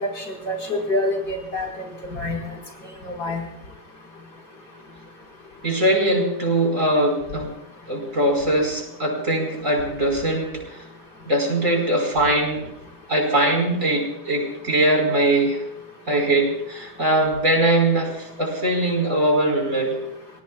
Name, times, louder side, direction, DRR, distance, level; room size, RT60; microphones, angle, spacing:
voice 1, 0.2-1.7 2.1-2.5 3.0-3.4, left 2 dB, 85° left, 1 dB, 5.2 m, -26 dB
voice 2, 5.6-7.5 7.9-10.8 11.3-12.6 13.1-15.6 16.1-20.0, right 1 dB, 50° right, 2 dB, 5.1 m, -21 dB
27.5 x 19.5 x 2.3 m, 0.82 s
omnidirectional pair, 1.8 m